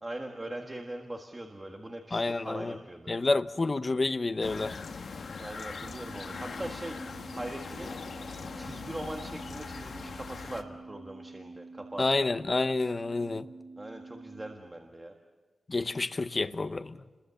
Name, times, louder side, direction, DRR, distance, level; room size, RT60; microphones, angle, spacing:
voice 1, 0.0-3.1 5.4-7.0 7.3-7.9 8.6-12.2 13.8-15.1, right 1 dB, 15° right, 1.6 m, -41 dB
voice 2, 2.1-2.8 3.1-4.8 12.0-13.5 15.7-17.0, left 3 dB, 30° left, 0.7 m, -29 dB
sound 1, 4.4-10.6, left 5 dB, 65° left, 1.3 m, -41 dB
sound 2, 5.8-14.5, right 3 dB, 65° right, 3.6 m, -48 dB
30.0 x 22.0 x 7.0 m
wide cardioid pair, 170°, 0 cm